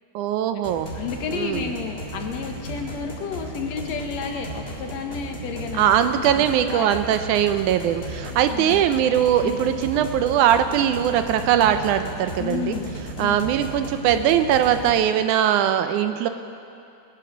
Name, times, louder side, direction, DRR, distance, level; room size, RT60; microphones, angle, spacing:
voice 1, 0.2-0.9 1.3-1.7 5.7-12.8 13.2-16.3, right 10 dB, 80° right, 9 dB, 2.1 m, -21 dB
sound 1, 0.6-15.0, right 1 dB, 25° left, 1.6 m, -35 dB
voice 2, 0.9-5.9 6.2-7.0 8.5-8.8 9.4-9.6 12.4-13.4, left 6 dB, 65° left, 4 dB, 2.1 m, -31 dB
21.5 x 9.1 x 6.1 m, 2.6 s
omnidirectional pair, 3.5 m